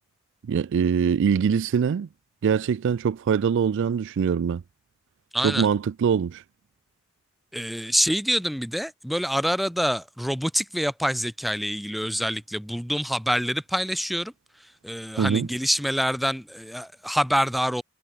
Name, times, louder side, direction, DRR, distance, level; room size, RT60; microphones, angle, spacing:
voice 1, 0.5-2.1 2.4-4.6 5.4-6.4 15.2-15.5, right 7 dB, 60° right, 0.3 m, -23 dB
voice 2, 5.3-5.7 7.5-14.3 14.8-17.8, equal, ahead, 1.9 m, -26 dB
head